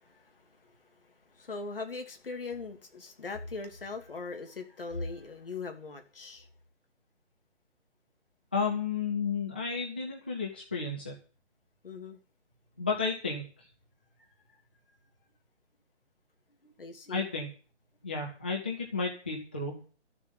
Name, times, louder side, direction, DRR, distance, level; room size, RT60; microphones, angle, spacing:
voice 1, 0.0-6.5 11.8-12.2 16.6-17.3, left 3 dB, 50° left, 5 dB, 2.9 m, -41 dB
voice 2, 8.5-11.1 12.8-13.4 17.1-17.5 18.0-19.7, left 4 dB, 10° left, -1 dB, 0.6 m, -32 dB
13.0 x 7.3 x 9.4 m, 0.38 s
figure-of-eight pair, 145°, 35 cm